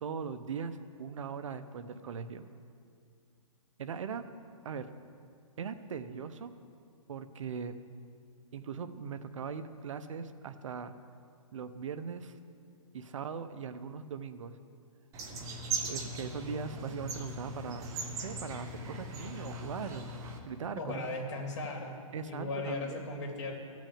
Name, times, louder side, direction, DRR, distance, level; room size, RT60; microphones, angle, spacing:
voice 1, 0.0-2.4 3.8-4.2 4.6-4.9 5.6-6.5 7.1-7.7 8.5-10.9 11.5-12.3 12.9-14.6 15.8-21.1 22.1-23.0, right 6 dB, 60° right, 11 dB, 0.9 m, -40 dB
sound 1, 15.1-20.4, right 2 dB, 20° right, 1.0 m, -39 dB
voice 2, 20.8-22.0 22.2-23.5, left 2 dB, 50° left, 0 dB, 3.0 m, -37 dB
14.5 x 6.2 x 8.6 m, 2.3 s
hypercardioid pair, 155°, 18 cm